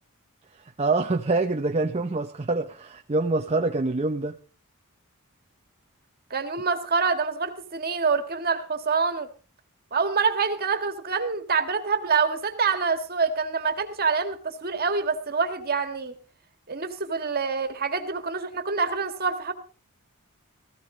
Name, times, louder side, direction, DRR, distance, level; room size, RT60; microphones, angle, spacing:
voice 1, 0.8-4.3, right 3 dB, 30° right, 0.7 m, -25 dB
voice 2, 6.3-9.3 9.9-16.1 16.7-19.5, right 5 dB, 45° right, 1.7 m, -26 dB
15.5 x 15.5 x 3.9 m
head